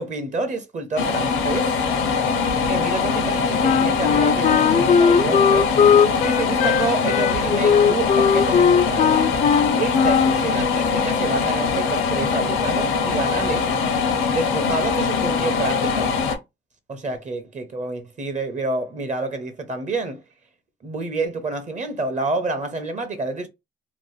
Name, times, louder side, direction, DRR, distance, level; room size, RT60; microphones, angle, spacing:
voice 1, 0.0-1.7 2.5-5.7 6.2-9.2 9.8-13.7 14.3-16.1 16.9-20.2 20.8-23.5, right 3 dB, 35° right, 0.7 m, -28 dB
sound 1, 1.0-16.4, left 5 dB, 80° left, 0.8 m, -22 dB
Wind instrument woodwind instrument, 3.6-10.4, left 7 dB, 35° left, 0.4 m, -18 dB
2.9 x 2.0 x 3.2 m
cardioid pair, 90°, 20 cm